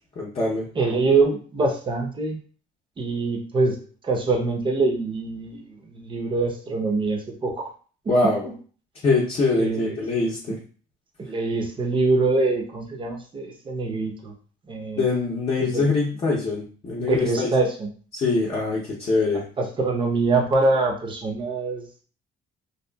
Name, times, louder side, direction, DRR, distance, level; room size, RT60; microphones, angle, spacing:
voice 1, 0.2-0.7 8.1-8.5 9.0-10.6 15.0-17.5 18.1-19.4, left 3 dB, 35° left, -5 dB, 0.7 m, -23 dB
voice 2, 0.7-2.4 3.0-3.8 4.0-7.7 9.5-10.0 10.5-10.6 11.2-14.3 14.7-15.0 15.6-15.9 16.3-16.4 17.0-17.9 19.3-22.0, right 3 dB, 30° right, 1 dB, 0.7 m, -24 dB
2.8 x 2.3 x 2.2 m, 0.41 s
cardioid pair, 110°, 17 cm